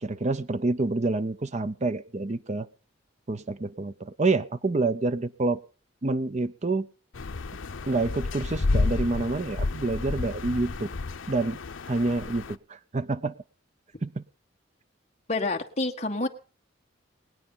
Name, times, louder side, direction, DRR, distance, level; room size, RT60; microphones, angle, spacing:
voice 1, 0.0-2.7 3.3-5.6 6.0-6.9 7.9-10.9 11.3-11.6 11.9-13.3 14.0-14.2, right 3 dB, 35° right, 13 dB, 0.6 m, -27 dB
sound 1, 7.1-12.5, left 3 dB, 85° left, 0.7 m, -30 dB
voice 2, 15.3-16.3, left 2 dB, 35° left, 3 dB, 1.6 m, -28 dB
20.5 x 9.2 x 5.6 m, 0.37 s
head